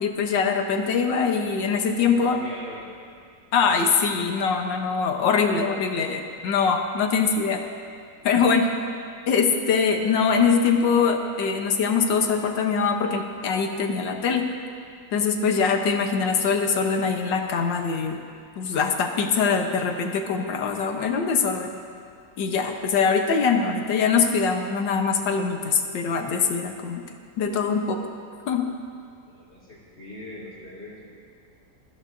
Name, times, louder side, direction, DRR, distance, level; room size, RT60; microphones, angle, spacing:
voice 1, 0.0-2.4 3.5-7.6 8.2-8.7 9.3-14.5 15.1-18.2 18.6-21.7 22.4-27.0 27.4-28.0 28.5-28.6, left 5 dB, 85° left, 4 dB, 1.7 m, -23 dB
voice 2, 2.0-2.9 29.3-31.1, left 1 dB, 35° left, -8 dB, 2.5 m, -41 dB
20.5 x 14.0 x 2.6 m, 2.3 s
omnidirectional pair, 1.9 m